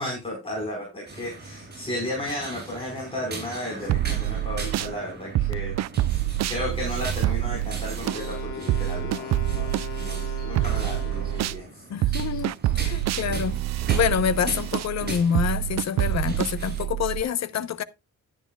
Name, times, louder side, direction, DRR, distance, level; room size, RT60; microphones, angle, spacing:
voice 1, 0.0-5.7 6.5-9.7 10.0-12.4, left 1 dB, 20° left, 4.9 m, -34 dB
sound 1, 1.0-16.8, right 2 dB, 30° right, 6.5 m, -40 dB
sound 2, 3.9-4.9 5.4-11.6 12.0-17.2, right 14 dB, 55° right, 0.4 m, -27 dB
Wind instrument woodwind instrument, 8.0-11.7, left 7 dB, 85° left, 1.9 m, -38 dB
voice 2, 11.9-13.6 13.9-17.8, left 8 dB, 60° left, 0.9 m, -27 dB
12.0 x 9.8 x 2.4 m
cardioid pair, 135°, 31 cm